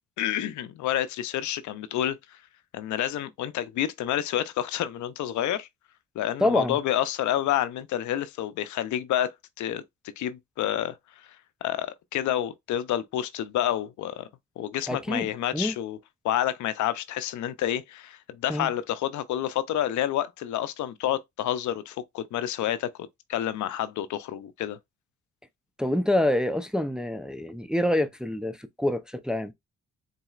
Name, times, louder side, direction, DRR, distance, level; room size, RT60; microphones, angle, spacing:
voice 1, 0.2-2.4 2.7-5.7 6.2-9.8 10.2-11.0 11.6-14.3 14.6-16.0 16.2-24.8, left 11 dB, 75° left, 0.6 m, -29 dB
voice 2, 6.4-6.8 14.9-15.8 18.5-18.7 25.8-29.5, left 1 dB, ahead, 0.5 m, -26 dB
4.0 x 4.0 x 2.4 m
cardioid pair, 90°, 30 cm